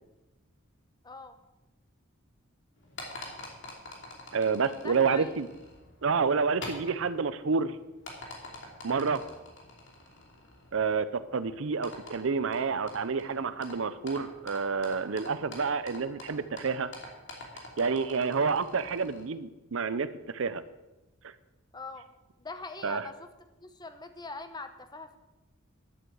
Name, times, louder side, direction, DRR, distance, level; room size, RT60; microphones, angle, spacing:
voice 1, 1.0-1.4 4.6-5.3 9.2-9.4 21.7-22.1 22.4-23.3 23.6-25.2, left 3 dB, 20° left, 9 dB, 1.0 m, -42 dB
sound 1, 2.8-19.2, left 2 dB, 65° left, 2.9 m, -47 dB
voice 2, 4.3-5.5 6.0-7.8 8.8-9.2 10.7-16.9 17.8-20.6 21.2-21.3 22.8-23.0, right 5 dB, 70° right, 14 dB, 0.6 m, -29 dB
11.0 x 7.8 x 7.9 m, 1.0 s
head